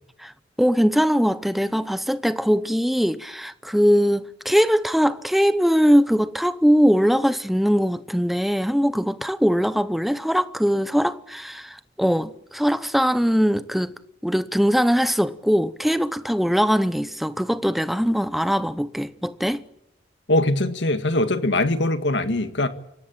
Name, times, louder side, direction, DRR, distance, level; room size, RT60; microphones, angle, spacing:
voice 1, 0.6-13.9 14.2-19.6, equal, ahead, 0.8 m, -21 dB
voice 2, 20.3-22.7, left 2 dB, 75° left, 1.9 m, -22 dB
25.0 x 17.5 x 8.7 m
head